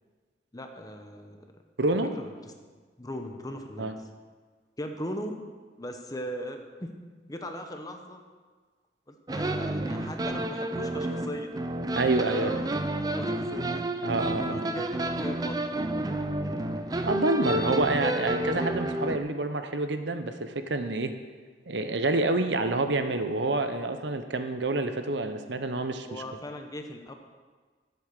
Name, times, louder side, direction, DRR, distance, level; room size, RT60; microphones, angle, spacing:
voice 1, 0.5-1.6 1.9-2.0 3.0-3.9 4.8-5.4 5.8-6.9 7.3-8.2 9.1-11.5 12.2-13.8 14.5-15.7 26.1-27.1, equal, 20° left, 5 dB, 0.9 m, -39 dB
voice 2, 1.8-2.1 3.8-3.9 11.9-12.5 14.0-14.8 17.0-21.1 21.7-26.2, right 2 dB, 80° right, 8 dB, 0.9 m, -28 dB
sound 1, 9.3-19.2, right 1 dB, 20° right, 0.5 m, -30 dB
11.0 x 8.1 x 6.6 m, 1.5 s
head